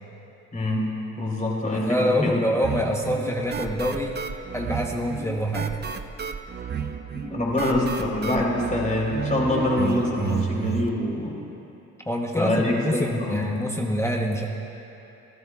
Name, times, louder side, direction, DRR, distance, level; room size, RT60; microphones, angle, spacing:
voice 1, 0.5-0.9 1.2-2.4 7.2-11.3 12.3-13.5, left 1 dB, 25° left, -3 dB, 3.9 m, -25 dB
voice 2, 1.7-4.2 4.5-5.8 12.0-14.5, equal, 10° left, 0 dB, 1.0 m, -25 dB
sound 1, 2.6-10.9, right 6 dB, 35° right, 0.7 m, -32 dB
26.0 x 14.5 x 2.4 m, 2.9 s
cardioid pair, 90°, 30 cm